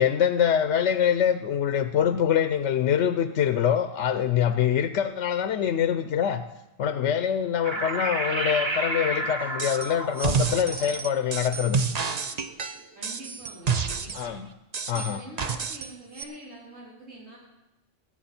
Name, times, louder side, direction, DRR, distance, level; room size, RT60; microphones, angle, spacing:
voice 1, 0.0-6.4 6.8-11.8 14.1-14.5 14.9-15.2, left 9 dB, 75° left, 10 dB, 0.9 m, -24 dB
sound 1, 7.6-12.5, right 1 dB, 25° right, 1.2 m, -32 dB
sound 2, 9.6-9.9 10.2-14.3 14.7-15.9 16.2-16.3, right 5 dB, 40° right, 0.7 m, -28 dB
voice 2, 12.9-14.4 14.9-17.4, right 1 dB, 90° right, -10 dB, 4.9 m, -45 dB
20.0 x 8.9 x 4.3 m, 0.94 s
omnidirectional pair, 1.3 m